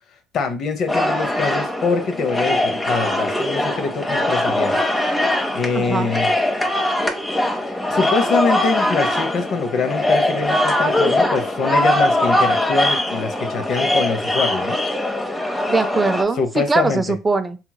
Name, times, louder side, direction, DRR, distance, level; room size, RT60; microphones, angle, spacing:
voice 1, 0.3-4.8 5.5-6.3 7.9-14.8 16.4-17.0, left 4 dB, 60° left, 0.6 m, -24 dB
sound 1, 0.9-16.2, left 1 dB, 20° left, 0.6 m, -21 dB
voice 2, 5.7-6.1 15.7-17.6, right 3 dB, 20° right, 0.3 m, -21 dB
2.9 x 2.8 x 2.2 m
supercardioid pair, 80°, 0 cm